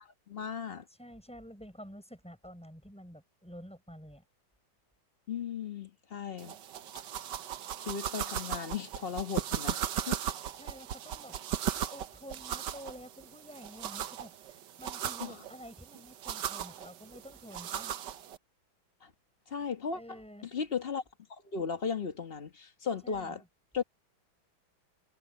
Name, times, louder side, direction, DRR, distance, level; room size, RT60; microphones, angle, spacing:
voice 1, 0.3-0.8 5.3-6.5 7.8-10.2 15.2-15.4 19.0-19.1 19.5-21.0 21.4-23.4 23.7-23.8, left 6 dB, 35° left, 1.2 m, -36 dB
voice 2, 1.0-4.2 10.5-11.4 11.7-18.0 19.9-20.5 23.0-23.5, equal, 5° left, 5.9 m, -49 dB
sound 1, 6.4-18.4, right 10 dB, 65° right, 1.5 m, -37 dB
omnidirectional pair, 2.2 m